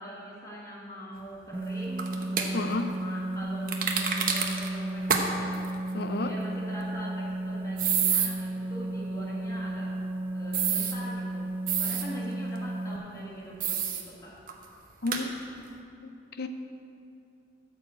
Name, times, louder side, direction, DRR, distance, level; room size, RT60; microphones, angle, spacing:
voice 1, 0.0-5.6 6.2-9.9 10.3-11.5 11.8-14.4, equal, 20° left, -5 dB, 1.6 m, -42 dB
sound 1, 1.5-13.0, right 1 dB, 10° right, 0.6 m, -34 dB
sound 2, 2.0-2.5 3.7-4.7 5.1-5.2 5.5-5.7 7.8-8.3 10.5-10.9 11.7-12.0 13.6-14.0 14.5-14.6 15.1-15.2, right 7 dB, 45° right, 0.9 m, -27 dB
voice 2, 2.5-2.9 5.9-6.3 15.0-15.3 16.0-16.5, left 3 dB, 55° left, 8 dB, 0.7 m, -31 dB
13.5 x 5.0 x 7.7 m, 2.6 s
head